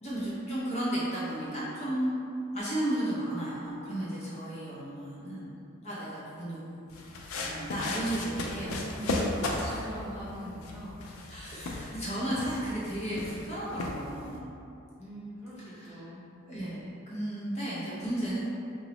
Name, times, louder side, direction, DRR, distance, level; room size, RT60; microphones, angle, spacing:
voice 1, 0.0-2.2 2.5-5.5 5.8-6.9 7.4-9.0 9.4-9.9 11.3-14.5 15.6-16.0 16.5-18.4, right 1 dB, 35° left, -9 dB, 0.6 m, -34 dB
sound 1, 6.9-14.4, left 2 dB, 85° left, 0.4 m, -36 dB
voice 2, 8.7-11.0 15.0-16.2, equal, 10° right, -10 dB, 0.8 m, -42 dB
3.7 x 2.0 x 2.9 m, 2.6 s
head